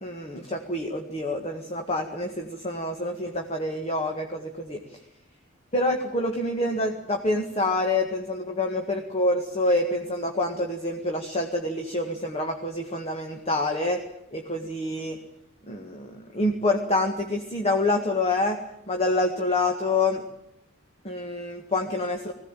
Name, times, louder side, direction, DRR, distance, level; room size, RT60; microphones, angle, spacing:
voice 1, 0.0-5.0 5.7-14.0 14.3-15.2 15.7-18.6 18.9-20.2 21.0-22.3, left 2 dB, 30° left, 3 dB, 1.7 m, -27 dB
20.5 x 16.5 x 9.1 m, 0.80 s
head